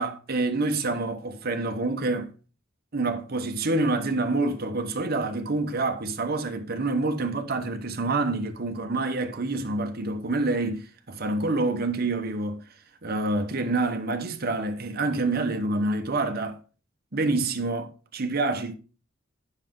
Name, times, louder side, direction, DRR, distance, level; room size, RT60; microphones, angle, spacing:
voice 1, 0.0-2.3 2.9-12.6 13.0-16.6 17.1-18.7, right 2 dB, 50° right, 1.0 m, -27 dB
7.5 x 6.4 x 3.7 m
head